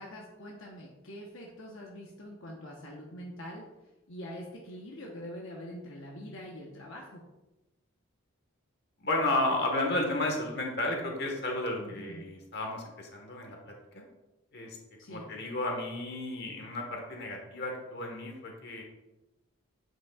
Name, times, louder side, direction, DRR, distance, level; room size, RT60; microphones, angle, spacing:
voice 1, 0.0-3.6 4.1-7.2 11.8-12.3 15.0-15.3, equal, 70° left, -2 dB, 0.9 m, -44 dB
voice 2, 9.0-14.0 14.5-14.8 15.1-18.8, left 1 dB, 50° left, 1 dB, 1.2 m, -33 dB
8.1 x 6.1 x 2.3 m, 1.0 s
head